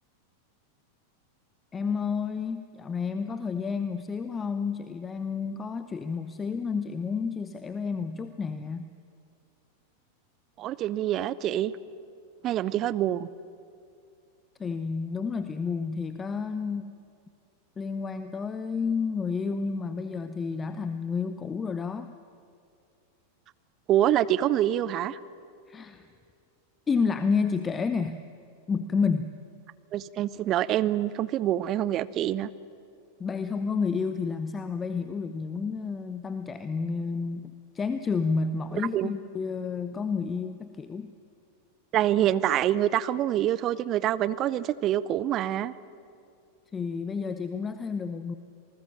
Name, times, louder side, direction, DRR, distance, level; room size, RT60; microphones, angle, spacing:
voice 1, 1.7-8.9 14.6-16.9 17.8-22.1 25.7-26.1 26.9-28.2 28.7-29.3 33.2-41.1 46.7-48.4, left 5 dB, 20° left, 10 dB, 0.8 m, -30 dB
voice 2, 10.6-11.7 12.4-13.3 23.9-25.2 29.9-32.5 38.9-39.1 41.9-45.7, right 12 dB, 35° right, 18 dB, 0.6 m, -26 dB
27.0 x 19.5 x 7.4 m, 2.3 s
figure-of-eight pair, 90°, 0 cm